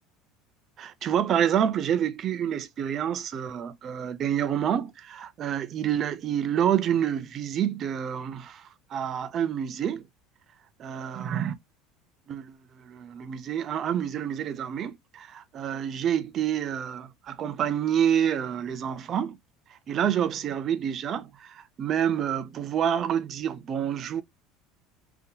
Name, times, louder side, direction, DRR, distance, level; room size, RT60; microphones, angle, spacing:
voice 1, 0.8-8.6 8.9-10.1 10.8-11.5 12.3-19.4 19.9-24.2, right 9 dB, 35° right, 0.4 m, -28 dB
2.6 x 2.1 x 2.7 m
cardioid pair, 145°, 0 cm